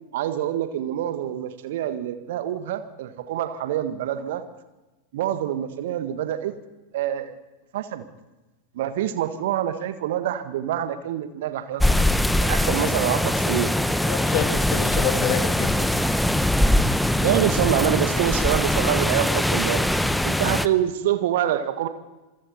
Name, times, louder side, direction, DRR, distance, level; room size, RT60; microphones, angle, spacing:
voice 1, 0.1-4.4 5.1-6.5 6.9-7.3 7.7-8.0 8.7-12.1 12.4-13.7 17.2-19.9 20.2-21.9, right 11 dB, 55° right, 10 dB, 1.6 m, -26 dB
sound 1, 11.8-20.7, left 1 dB, ahead, 0.9 m, -22 dB
voice 2, 14.1-15.9, left 11 dB, 40° left, 8 dB, 2.0 m, -28 dB
27.0 x 22.5 x 4.4 m, 1.1 s
figure-of-eight pair, 90°, 0 cm